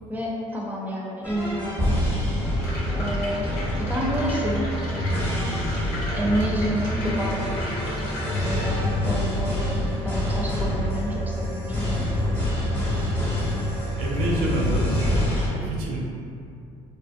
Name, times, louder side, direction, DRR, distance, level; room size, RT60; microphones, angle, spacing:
voice 1, 0.1-2.0 2.9-3.5 3.8-5.0 6.1-7.8 8.3-12.1, equal, 10° right, -4 dB, 0.6 m, -29 dB
sound 1, 1.2-15.5, left 1 dB, 15° left, 0.9 m, -26 dB
sound 2, 2.6-8.6, left 1 dB, 80° left, 0.6 m, -37 dB
voice 2, 14.0-15.2 15.5-16.0, right 2 dB, 80° right, -3 dB, 0.5 m, -28 dB
2.4 x 2.1 x 2.5 m, 2.5 s
hypercardioid pair, 70°, 18 cm